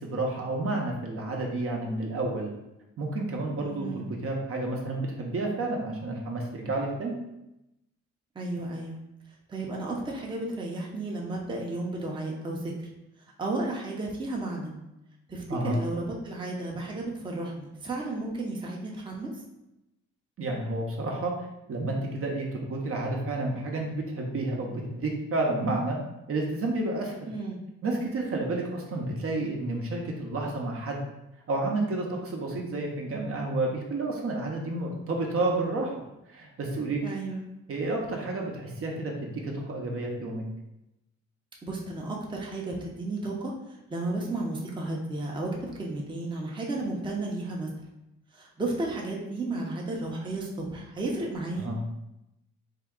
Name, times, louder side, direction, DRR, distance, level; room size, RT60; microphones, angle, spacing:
voice 1, 0.0-2.5 3.0-7.2 15.5-15.8 20.4-21.3 21.7-26.0 26.3-27.3 27.8-31.0 31.5-36.0 36.3-37.0 37.7-40.4 51.6-51.8, right 2 dB, 50° right, 0 dB, 0.7 m, -30 dB
voice 2, 3.6-4.0 8.3-9.0 9.5-12.9 13.4-14.7 15.3-19.4 27.3-27.6 37.0-37.4 41.6-43.5 43.9-47.7 48.3-51.7, right 2 dB, 15° right, -2 dB, 0.7 m, -33 dB
3.6 x 2.2 x 3.6 m, 0.91 s
cardioid pair, 90°, 30 cm